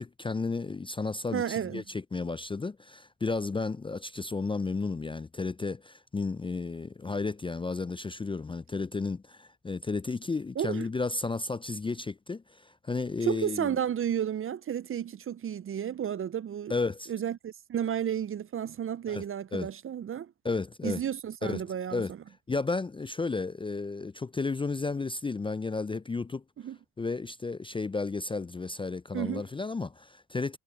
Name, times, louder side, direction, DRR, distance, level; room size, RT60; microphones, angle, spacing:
voice 1, 0.0-13.8 16.7-17.1 19.1-19.2 19.5-19.7 20.4-21.0 21.4-22.1 22.5-26.4 27.0-30.6, left 3 dB, 10° left, 0.6 m, -33 dB
voice 2, 1.3-1.8 10.6-10.9 13.2-16.7 17.1-20.3 20.8-22.0 26.6-26.8 29.1-29.4, right 9 dB, 30° right, 0.8 m, -32 dB
hypercardioid pair, 65°, 42 cm